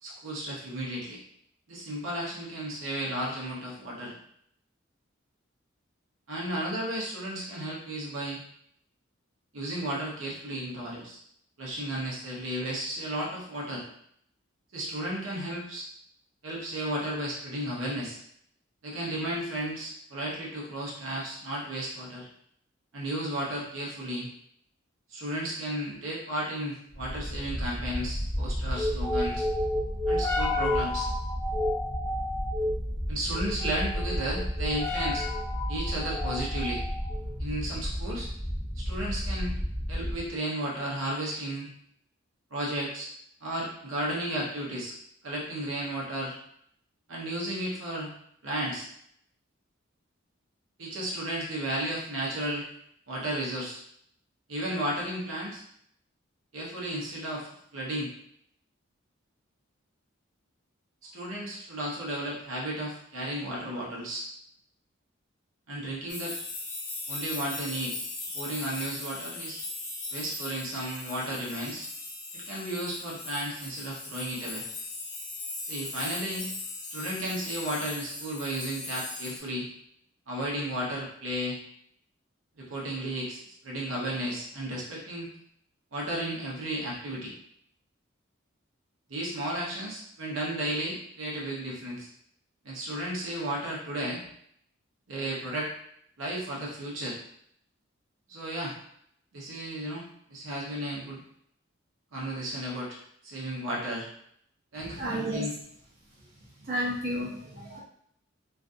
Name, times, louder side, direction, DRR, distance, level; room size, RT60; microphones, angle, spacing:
voice 1, 0.0-1.2 1.7-4.1 6.3-8.4 9.5-11.2 11.6-13.8 14.7-15.9 16.4-18.2 18.8-22.3 22.9-24.3 25.1-29.4 30.1-31.1 33.1-35.2 35.7-36.8 37.4-38.3 38.8-39.5 39.9-41.7 42.5-43.1 43.4-44.9 45.2-46.4 47.1-48.1 48.4-48.9 50.8-52.7 53.1-53.8 54.5-55.6 56.5-58.1 61.1-64.3 65.7-66.3 67.1-68.0 68.3-69.6 70.1-71.9 72.3-74.6 75.7-76.5 76.9-79.7 80.3-81.6 82.6-85.3 85.9-87.3 89.1-92.1 92.6-94.2 95.1-95.7 96.2-97.2 98.3-98.7 99.3-101.2 102.1-103.0 103.2-104.1 104.7-105.5, right 1 dB, 80° right, -4 dB, 0.8 m, -33 dB
sound 1, 27.0-40.3, left 1 dB, 10° left, 0.3 m, -30 dB
sound 2, 66.1-79.4, left 2 dB, 65° left, 0.9 m, -39 dB
voice 2, 105.0-105.4 106.7-107.8, right 1 dB, 50° right, -6 dB, 0.7 m, -31 dB
2.5 x 2.3 x 2.5 m, 0.70 s
head